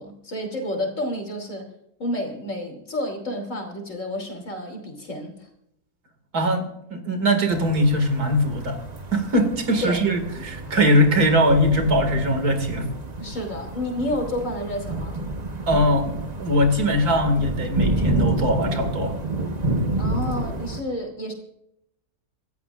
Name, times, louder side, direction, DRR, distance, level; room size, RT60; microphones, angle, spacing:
voice 1, 0.0-1.7 2.0-5.5 9.8-10.1 13.2-15.3 20.0-21.3, left 1 dB, 55° left, 3 dB, 3.4 m, -30 dB
voice 2, 6.3-8.8 9.1-12.9 15.7-19.2, equal, 80° right, 7 dB, 2.6 m, -21 dB
sound 1, 7.5-20.8, right 2 dB, 30° right, 1.1 m, -29 dB
26.5 x 13.5 x 2.5 m, 0.76 s
omnidirectional pair, 1.6 m